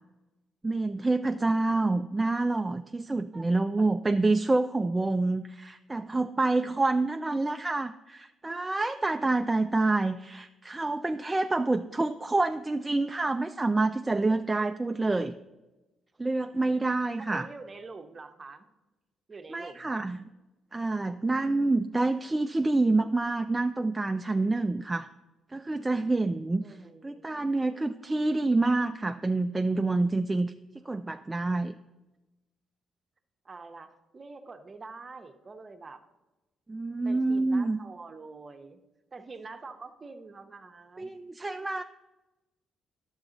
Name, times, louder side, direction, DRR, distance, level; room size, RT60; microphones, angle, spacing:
voice 1, 0.6-15.3 16.2-17.5 19.5-20.2 20.7-25.1 25.5-26.8 27.0-30.5 30.9-31.7 36.7-37.8 41.0-41.8, right 2 dB, 20° right, 7 dB, 0.3 m, -27 dB
voice 2, 17.2-18.7 19.3-20.1 26.6-27.9 33.4-36.0 37.0-38.8 39.1-41.1, right 4 dB, 35° right, 7 dB, 0.8 m, -46 dB
10.5 x 7.1 x 3.9 m, 1.1 s
cardioid pair, 90°, 0 cm